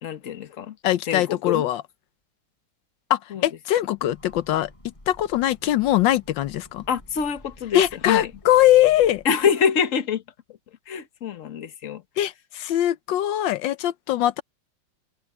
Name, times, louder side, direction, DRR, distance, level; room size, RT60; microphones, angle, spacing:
voice 1, 0.0-0.8 1.1-1.6 3.3-3.4 6.9-8.3 9.2-10.2 10.9-12.0, left 7 dB, 50° left, 1.5 m, -25 dB
voice 2, 0.8-1.8 3.1-4.7 5.1-6.8 7.7-9.2 12.2-14.4, left 13 dB, 85° left, 1.4 m, -21 dB
Train, 3.8-9.6, left 1 dB, 15° left, 6.2 m, -51 dB
omnidirectional pair, 2.0 m